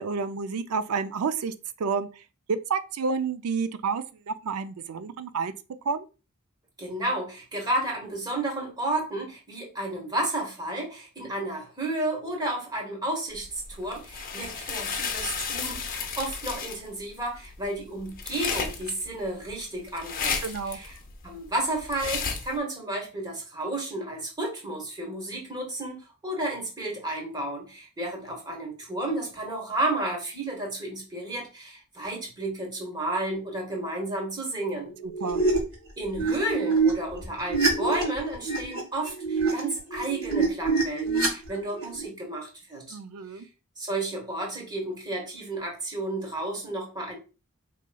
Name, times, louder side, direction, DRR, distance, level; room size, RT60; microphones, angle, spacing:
voice 1, 0.0-2.1 2.5-5.5 5.8-6.0 20.4-20.8 35.0-35.4 42.9-43.4, right 5 dB, 90° right, 0.4 m, -30 dB
voice 2, 6.8-20.4 20.6-21.0 21.2-34.9 36.0-43.0 43.8-47.2, right 1 dB, 20° right, 1.3 m, -32 dB
sound 1, 13.4-22.6, left 5 dB, 40° left, 0.6 m, -33 dB
sound 2, 35.0-35.7 36.1-42.1, right 4 dB, 75° right, 1.6 m, -26 dB
4.6 x 3.0 x 2.2 m
head